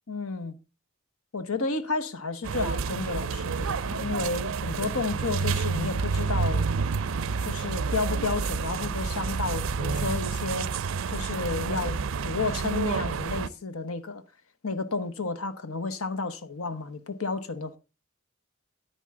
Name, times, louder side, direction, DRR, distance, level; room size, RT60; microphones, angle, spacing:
voice 1, 0.1-0.6 1.3-6.7 7.4-10.7 11.1-14.2 14.6-17.8, left 3 dB, 90° left, 1.1 m, -31 dB
sound 1, 2.4-13.5, right 5 dB, 70° right, 0.5 m, -29 dB
10.0 x 10.0 x 3.6 m
head